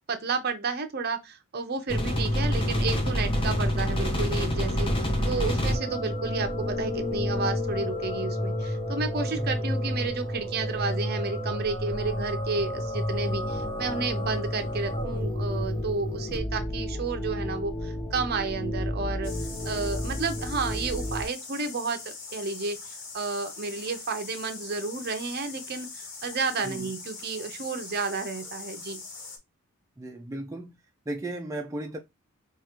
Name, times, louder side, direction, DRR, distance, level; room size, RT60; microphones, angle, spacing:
voice 1, 0.1-19.3 19.6-22.8 23.1-29.0, right 4 dB, 50° right, 0.7 m, -31 dB
sound 1, 1.9-21.2, left 1 dB, 25° left, 0.8 m, -29 dB
sound 2, 19.2-29.4, left 4 dB, 60° left, 1.3 m, -42 dB
voice 2, 26.6-26.9 30.0-30.8 31.1-32.0, right 1 dB, 15° right, 0.4 m, -36 dB
4.8 x 2.4 x 2.9 m
head